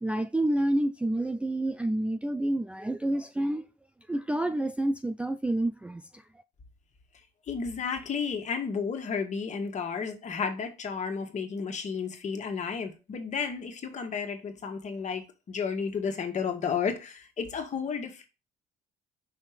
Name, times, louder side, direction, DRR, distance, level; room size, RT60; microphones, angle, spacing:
voice 1, 0.0-3.6 4.1-6.0, right 1 dB, 5° right, 0.4 m, -28 dB
voice 2, 7.5-18.3, left 6 dB, 45° left, 1.7 m, -32 dB
5.7 x 4.5 x 5.1 m
cardioid pair, 110°, 17 cm